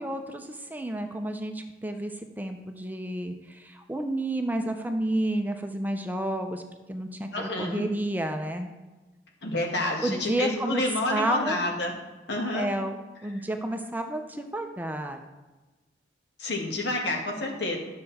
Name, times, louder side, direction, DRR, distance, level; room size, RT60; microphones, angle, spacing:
voice 1, 0.0-6.6 6.9-8.7 10.0-11.6 12.5-15.2, right 1 dB, 10° right, 5 dB, 0.6 m, -31 dB
voice 2, 7.3-7.8 9.4-11.9 12.3-12.7 16.4-17.8, left 2 dB, 70° left, 0 dB, 2.0 m, -29 dB
11.5 x 6.7 x 4.2 m, 1.2 s
head